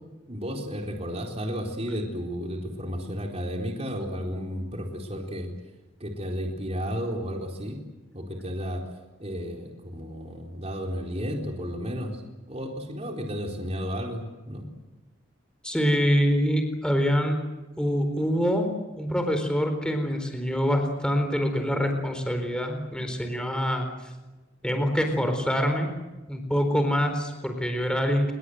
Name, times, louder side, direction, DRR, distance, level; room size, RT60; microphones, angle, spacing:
voice 1, 0.3-5.5 6.0-7.8 8.1-12.2 12.5-14.6, equal, 35° right, 1 dB, 4.1 m, -33 dB
voice 2, 15.6-17.4 17.8-18.7 19.0-23.9 24.6-25.9 26.3-28.3, equal, 5° left, 5 dB, 4.2 m, -25 dB
29.5 x 23.0 x 8.0 m, 1.1 s
head